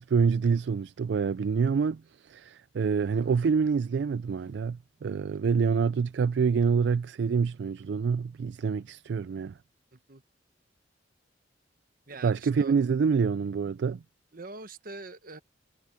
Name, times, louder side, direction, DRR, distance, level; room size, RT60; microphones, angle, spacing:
voice 1, 0.0-9.6 12.2-14.0, right 5 dB, 70° right, 0.3 m, -26 dB
voice 2, 9.9-10.2 12.1-12.7 14.3-15.4, right 3 dB, 50° right, 1.2 m, -43 dB
head